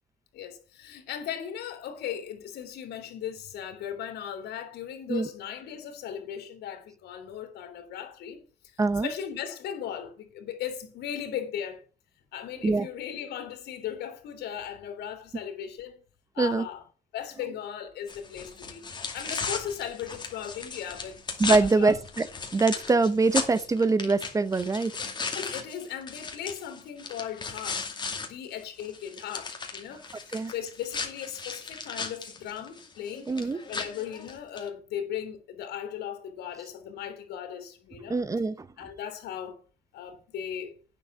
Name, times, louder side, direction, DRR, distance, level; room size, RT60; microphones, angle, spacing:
voice 1, 0.3-11.8 12.3-16.0 16.3-16.8 17.1-18.9 19.1-21.2 21.6-21.9 25.3-27.9 28.2-33.3 33.7-38.2 38.8-39.6 39.9-40.7, left 9 dB, 75° left, 3.0 m, -37 dB
voice 2, 8.8-9.1 12.6-12.9 16.4-16.6 21.4-22.3 22.5-24.9 30.3-30.5 33.3-33.6 38.1-38.7, right 3 dB, 20° right, 0.8 m, -24 dB
sound 1, 18.1-28.3 28.6-34.7, left 4 dB, 25° left, 2.4 m, -36 dB
9.4 x 6.9 x 6.1 m
cardioid pair, 110°, 17 cm